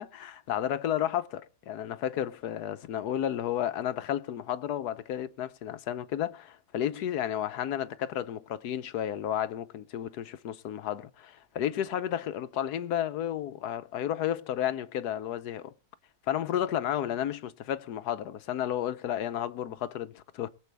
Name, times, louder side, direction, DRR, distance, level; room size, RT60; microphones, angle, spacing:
voice 1, 0.0-15.7 16.3-20.5, left 10 dB, 90° left, 1.3 m, -32 dB
22.5 x 7.6 x 3.4 m
omnidirectional pair, 1.7 m